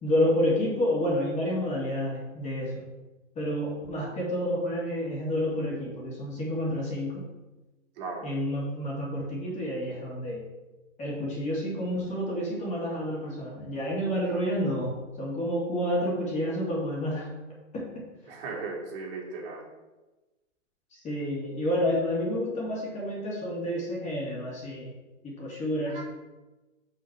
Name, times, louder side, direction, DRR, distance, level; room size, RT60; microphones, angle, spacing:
voice 1, 0.0-2.9 3.4-7.2 8.2-10.4 11.0-17.3 17.7-18.0 21.0-24.9 25.2-26.0, equal, 20° left, -4 dB, 2.4 m, -29 dB
voice 2, 8.0-8.3 18.3-19.7 25.9-26.0, right 3 dB, 45° right, -2 dB, 2.6 m, -37 dB
5.7 x 5.6 x 6.0 m, 1.1 s
hypercardioid pair, 130°, 38 cm